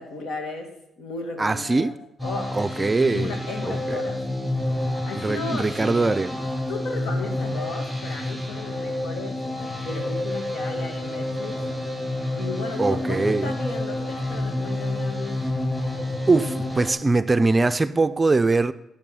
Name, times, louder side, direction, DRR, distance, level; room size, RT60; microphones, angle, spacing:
voice 1, 0.0-2.0 2.2-4.2 4.6-6.1 6.7-9.4 9.8-11.7 12.3-15.5, left 3 dB, 75° left, 2.3 m, -35 dB
voice 2, 1.4-1.9 2.5-3.3 3.6-4.0 5.2-6.4 12.8-13.5 16.3-18.7, right 3 dB, 20° right, 0.5 m, -22 dB
sound 1, 2.2-16.9, left 1 dB, 15° left, 5.4 m, -29 dB
14.5 x 6.1 x 6.3 m
cardioid pair, 90°, 0 cm